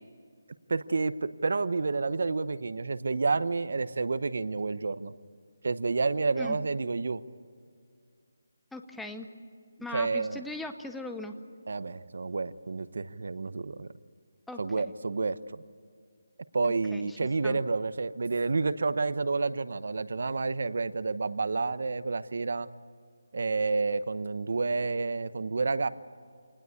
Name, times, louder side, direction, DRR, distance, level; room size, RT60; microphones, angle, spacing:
voice 1, 0.7-5.1 5.6-7.2 9.9-10.4 11.7-13.9 14.6-15.6 16.5-22.7 23.3-25.9, right 4 dB, 60° right, 14 dB, 1.0 m, -29 dB
voice 2, 8.7-9.3 9.8-11.4 14.5-14.9 16.6-17.2 17.4-17.6, left 2 dB, ahead, 6 dB, 0.7 m, -40 dB
27.5 x 19.5 x 8.5 m, 2.2 s
hypercardioid pair, 170°, 0 cm